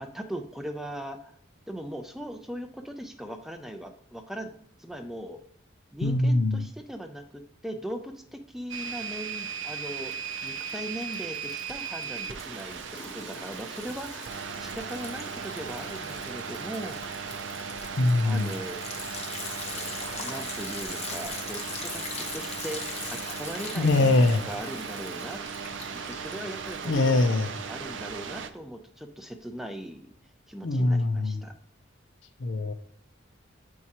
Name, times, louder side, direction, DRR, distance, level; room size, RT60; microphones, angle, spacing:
voice 1, 0.0-1.3 1.7-4.5 4.8-5.4 5.9-14.3 14.6-17.3 18.2-18.8 20.2-24.1 24.4-25.4 25.9-27.3 27.7-30.2 30.5-31.5, equal, ahead, 5 dB, 0.3 m, -39 dB
voice 2, 6.0-6.6 18.0-18.5 23.8-24.4 26.8-27.5 30.6-31.4 32.4-32.7, left 2 dB, 70° left, 9 dB, 0.6 m, -23 dB
sound 1, 8.7-28.5, right 6 dB, 70° right, 0.5 m, -37 dB
Liquid, 10.1-10.7 11.0-27.2, left 4 dB, 30° left, 0.7 m, -41 dB
7.5 x 4.7 x 2.8 m, 0.65 s
head